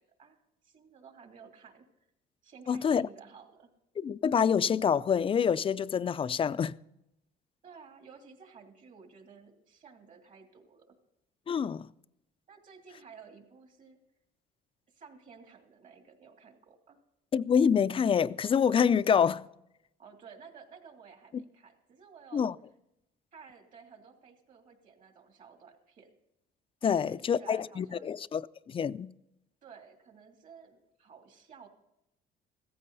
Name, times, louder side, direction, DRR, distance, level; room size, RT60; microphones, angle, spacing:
voice 1, 0.0-1.8 2.4-3.7 7.6-10.9 12.5-14.0 14.9-17.0 20.0-22.5 23.3-26.1 26.8-28.1 29.6-31.7, right 6 dB, 50° right, 3.0 m, -54 dB
voice 2, 2.7-3.1 4.0-6.7 11.5-11.9 17.3-19.4 22.3-22.5 26.8-29.1, left 7 dB, 30° left, 0.5 m, -26 dB
15.5 x 14.5 x 4.1 m
cardioid pair, 110°, 17 cm